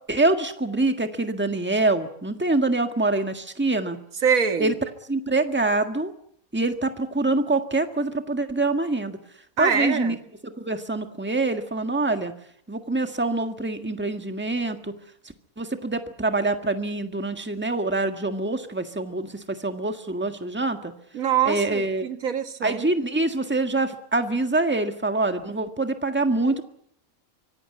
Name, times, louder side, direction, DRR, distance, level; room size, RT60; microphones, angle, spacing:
voice 1, 0.1-4.0 4.6-4.7 5.1-6.1 6.5-9.2 9.6-10.2 10.4-12.3 12.7-14.9 15.6-20.9 21.4-22.1 22.6-26.6, right 2 dB, 10° right, 7 dB, 1.7 m, -25 dB
voice 2, 4.2-4.7 9.6-10.2 21.1-22.9, right 7 dB, 70° right, 9 dB, 1.8 m, -24 dB
25.0 x 16.5 x 9.7 m, 0.69 s
omnidirectional pair, 1.5 m